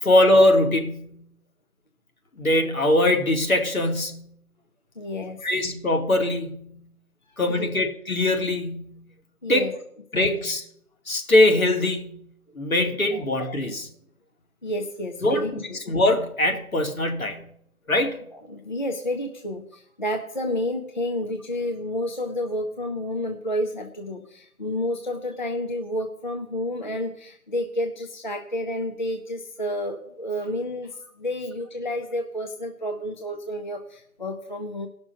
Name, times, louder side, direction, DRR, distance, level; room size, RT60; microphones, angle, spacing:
voice 1, 0.0-1.2 2.4-4.3 5.4-6.8 7.4-9.0 9.5-9.7 10.1-10.6 11.1-12.2 12.5-13.9 15.2-15.5 15.9-17.4 17.9-18.2, left 1 dB, 65° left, 2 dB, 2.5 m, -22 dB
voice 2, 5.0-5.4 7.3-7.7 9.4-9.7 10.1-10.3 13.1-13.2 14.6-15.8 18.3-34.9, left 1 dB, 30° left, 3 dB, 0.8 m, -30 dB
17.5 x 6.1 x 5.4 m, 0.69 s
figure-of-eight pair, 155°, 44 cm